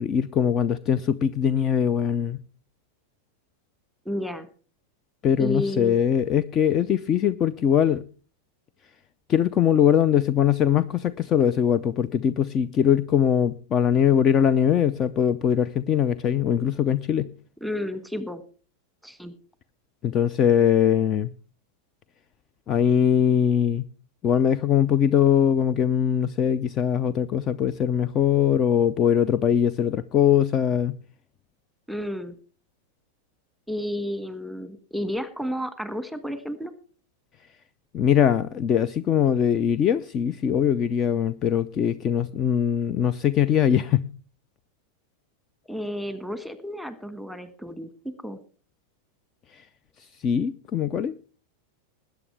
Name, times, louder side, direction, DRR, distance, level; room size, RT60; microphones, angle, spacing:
voice 1, 0.0-2.4 5.2-8.0 9.3-17.3 20.0-21.3 22.7-23.8 24.2-31.0 37.9-44.1 49.5-49.6 50.2-51.1, left 9 dB, 30° left, 0.6 m, -21 dB
voice 2, 4.0-4.5 5.4-6.0 17.6-18.4 19.0-19.3 31.9-32.4 33.7-36.7 45.7-47.9 48.2-48.4, equal, ahead, 1.6 m, -31 dB
20.5 x 9.1 x 3.3 m
figure-of-eight pair, 90°, 0 cm